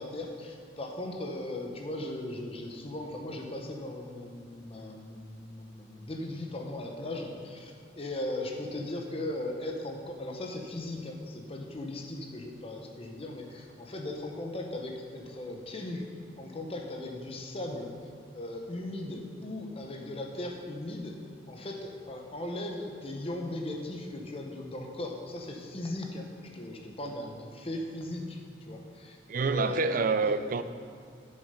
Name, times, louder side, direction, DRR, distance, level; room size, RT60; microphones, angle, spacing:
voice 1, 0.0-16.0 16.4-17.9 18.3-21.1 21.5-26.3 26.5-28.4 28.7-30.3, left 1 dB, 30° left, 2 dB, 0.9 m, -38 dB
voice 2, 29.3-30.6, right 4 dB, 50° right, 11 dB, 0.4 m, -27 dB
8.7 x 6.5 x 5.7 m, 2.4 s
head